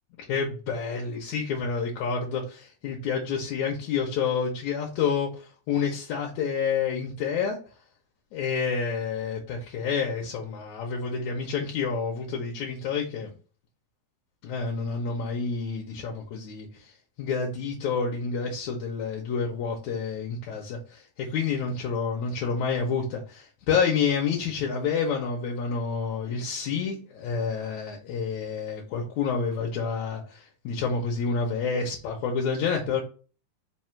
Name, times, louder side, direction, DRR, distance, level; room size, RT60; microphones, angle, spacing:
voice 1, 0.2-7.6 8.3-13.3 14.4-16.9 17.2-33.0, left 5 dB, 75° left, 0 dB, 1.9 m, -29 dB
4.9 x 2.3 x 4.2 m, 0.38 s
omnidirectional pair, 3.5 m